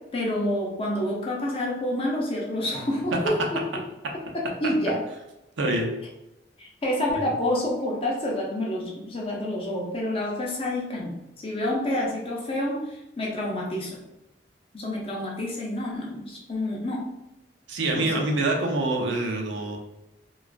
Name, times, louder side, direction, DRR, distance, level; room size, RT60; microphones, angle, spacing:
voice 1, 0.1-3.6 4.3-5.0 6.6-14.0 14.7-17.1 17.9-18.3, left 1 dB, 30° left, -3 dB, 0.5 m, -28 dB
voice 2, 5.6-5.9 7.2-7.3 17.7-19.8, right 2 dB, 80° right, 2 dB, 0.5 m, -25 dB
2.3 x 2.2 x 2.4 m, 0.92 s
head